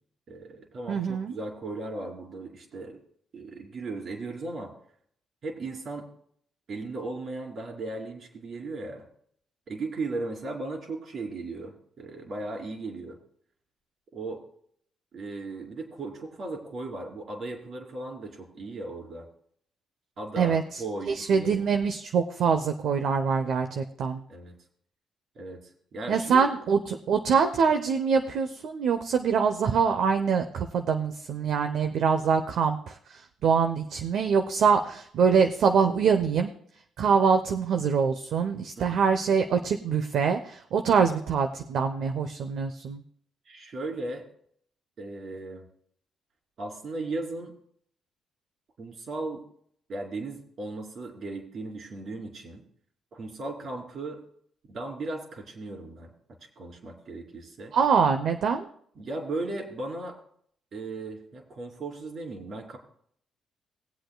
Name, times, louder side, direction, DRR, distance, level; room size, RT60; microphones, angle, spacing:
voice 1, 0.3-3.0 3.3-4.7 5.4-6.0 6.7-9.0 9.7-13.2 14.1-14.4 15.1-19.2 20.2-21.6 24.3-24.5 25.3-26.5 38.8-39.0 43.4-44.2 45.0-45.6 46.6-47.5 48.8-49.4 49.9-52.6 53.1-54.2 54.7-56.1 56.6-57.7 58.9-60.2 60.7-62.8, right 2 dB, 55° right, 1 dB, 3.2 m, -36 dB
voice 2, 0.9-1.3 20.4-20.8 21.1-24.2 26.1-36.5 37.0-43.0 57.7-58.7, right 6 dB, 70° right, 6 dB, 0.8 m, -24 dB
20.5 x 7.9 x 2.3 m, 0.64 s
cardioid pair, 90°, 0 cm